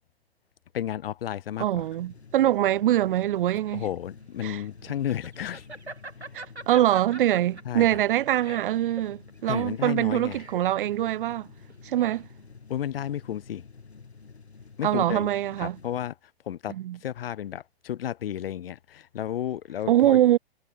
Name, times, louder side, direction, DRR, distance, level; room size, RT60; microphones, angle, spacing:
voice 1, 0.7-1.8 3.7-5.7 7.7-8.0 9.5-10.4 12.7-13.6 14.8-15.3 15.6-16.1 16.5-16.8 17.0-20.2, left 10 dB, 65° left, 0.7 m, -32 dB
voice 2, 1.6-3.8 4.4-4.6 6.3-11.5 11.8-12.3 14.8-15.8 16.7-17.0 19.9-20.4, right 13 dB, 55° right, 0.6 m, -24 dB
sound 1, 1.8-16.1, left 5 dB, 85° left, 1.8 m, -50 dB
Laughter, 3.1-12.5, right 2 dB, 90° right, 2.3 m, -44 dB
figure-of-eight pair, 105°, 32 cm